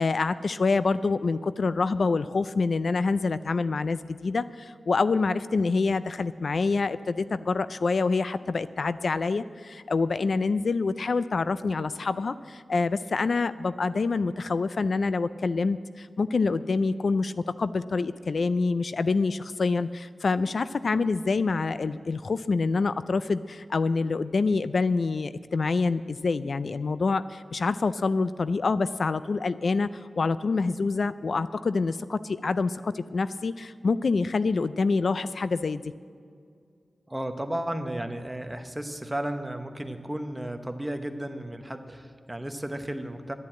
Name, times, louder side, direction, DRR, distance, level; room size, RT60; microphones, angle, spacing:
voice 1, 0.0-17.3 17.6-35.8, left 4 dB, 65° left, 14 dB, 0.3 m, -26 dB
voice 2, 37.1-43.3, right 1 dB, 15° right, 6 dB, 1.0 m, -34 dB
10.5 x 10.5 x 8.5 m, 2.2 s
wide cardioid pair, 105°, 0 cm